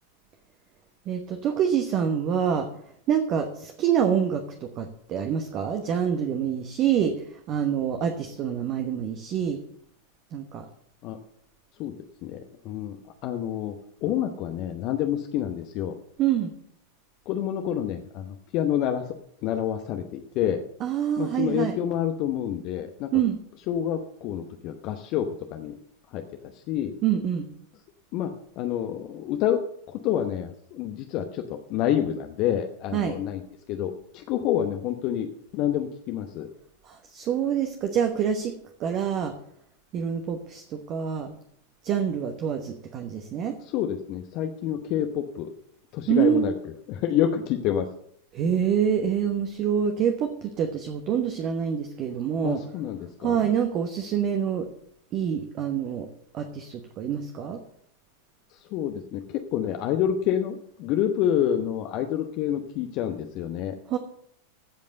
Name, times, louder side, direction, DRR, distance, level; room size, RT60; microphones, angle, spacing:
voice 1, 1.1-2.7 3.1-9.6 10.3-10.7 16.2-16.5 20.8-21.7 23.1-23.4 27.0-27.5 32.9-33.2 36.8-38.5 38.8-39.3 39.9-41.3 41.8-43.6 46.1-46.5 48.3-52.6 53.2-54.7 55.1-56.1 56.3-57.6 63.9-64.0, right 8 dB, 35° right, 6 dB, 1.1 m, -26 dB
voice 2, 12.6-13.0 13.2-13.7 14.0-15.9 17.3-19.1 19.4-20.6 21.2-23.1 23.7-25.8 26.1-26.9 28.1-28.3 28.6-29.6 29.9-33.4 33.7-35.3 35.5-36.5 43.6-45.5 45.9-46.5 46.9-47.9 52.4-53.5 58.5-64.0, left 10 dB, 40° left, 6 dB, 0.9 m, -28 dB
15.5 x 5.3 x 6.6 m, 0.70 s
figure-of-eight pair, 90°, 0 cm